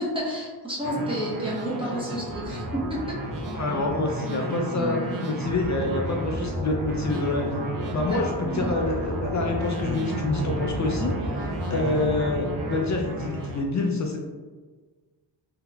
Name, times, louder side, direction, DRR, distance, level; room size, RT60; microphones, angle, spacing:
voice 1, 0.0-3.2 4.7-5.2 8.0-8.1 8.4-8.7, equal, 10° right, -6 dB, 1.1 m, -31 dB
sound 1, 0.8-13.6, right 1 dB, 50° right, 0.6 m, -31 dB
voice 2, 3.5-7.6 7.9-14.2, left 2 dB, 45° left, 1 dB, 0.4 m, -27 dB
3.6 x 2.8 x 2.3 m, 1.4 s
cardioid pair, 90°, 42 cm